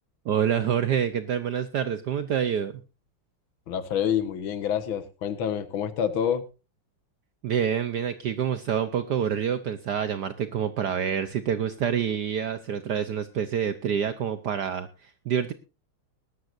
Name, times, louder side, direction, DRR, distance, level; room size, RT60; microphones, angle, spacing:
voice 1, 0.3-2.7 7.4-14.9 15.3-15.5, right 8 dB, 60° right, 12 dB, 1.2 m, -27 dB
voice 2, 3.7-6.4, left 8 dB, 70° left, 12 dB, 2.0 m, -27 dB
19.5 x 12.5 x 2.6 m, 0.30 s
omnidirectional pair, 2.4 m